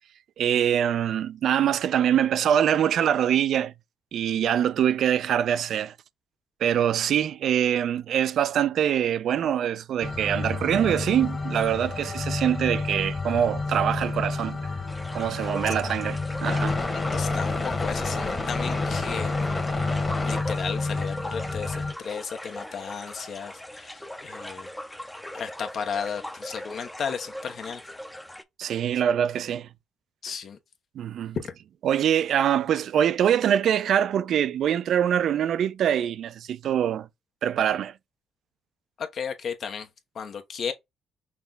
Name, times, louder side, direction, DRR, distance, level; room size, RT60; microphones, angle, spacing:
voice 1, 0.4-3.7 4.1-5.9 6.6-14.6 15.1-16.8 28.6-29.7 31.0-31.4 31.8-37.1 37.4-37.9, right 9 dB, 70° right, 0.4 m, -24 dB
sound 1, 10.0-21.9, left 3 dB, 25° left, 1.4 m, -29 dB
sound 2, 14.9-28.4, left 1 dB, 5° left, 0.6 m, -40 dB
voice 2, 16.9-19.4 20.2-24.7 25.3-27.8 30.2-30.6 31.4-31.5 39.0-39.9 40.1-40.7, left 6 dB, 55° left, 1.0 m, -34 dB
5.8 x 2.3 x 3.8 m
cardioid pair, 90°, 0 cm